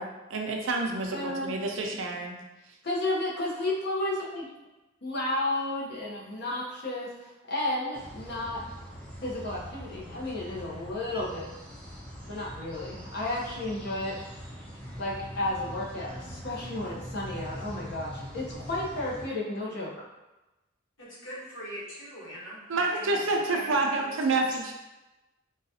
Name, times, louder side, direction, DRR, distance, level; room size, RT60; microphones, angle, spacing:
voice 1, 0.0-2.3 22.7-24.7, right 3 dB, 75° right, 2 dB, 0.5 m, -28 dB
voice 2, 1.1-1.6 2.8-4.5 5.0-8.6 9.2-11.5 12.3-14.2 15.0-20.0, left 1 dB, 55° left, -4 dB, 0.8 m, -32 dB
sound 1, 7.9-19.2, equal, 5° left, 0.6 m, -43 dB
voice 3, 21.0-24.5, equal, 75° left, -8 dB, 1.3 m, -43 dB
3.9 x 2.3 x 2.7 m, 1.0 s
head